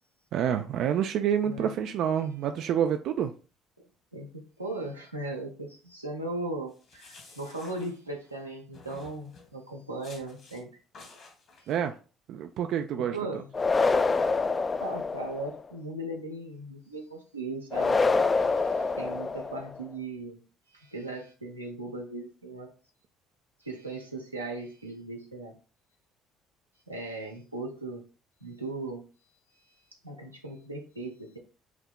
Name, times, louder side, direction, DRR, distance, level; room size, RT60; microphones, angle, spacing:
voice 1, 0.3-3.3 11.7-11.9 12.3-13.2, right 9 dB, 55° right, 0.3 m, -28 dB
voice 2, 4.1-10.7 11.6-11.7 13.0-13.5 14.8-18.0 18.4-20.4 20.7-22.7 23.6-25.6 26.9-28.0 28.4-29.0 30.0-31.4, right 2 dB, 90° right, 0.8 m, -38 dB
sound 1, 6.7-8.4 8.7-9.5 10.0-10.6 10.9-11.8, left 3 dB, 50° left, 1.4 m, -52 dB
sound 2, 13.5-15.6 17.7-19.8, left 4 dB, 25° left, 0.3 m, -26 dB
8.2 x 2.8 x 2.2 m
figure-of-eight pair, 55°, 0 cm